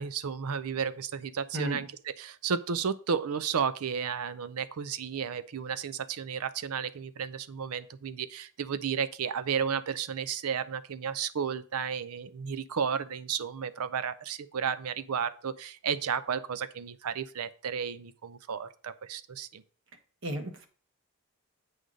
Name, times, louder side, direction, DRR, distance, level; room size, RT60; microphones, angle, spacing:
voice 1, 0.0-19.6, right 7 dB, 80° right, 14 dB, 0.5 m, -33 dB
voice 2, 1.5-1.8 20.2-20.7, equal, 60° right, 6 dB, 1.2 m, -33 dB
7.9 x 3.9 x 6.1 m, 0.42 s
head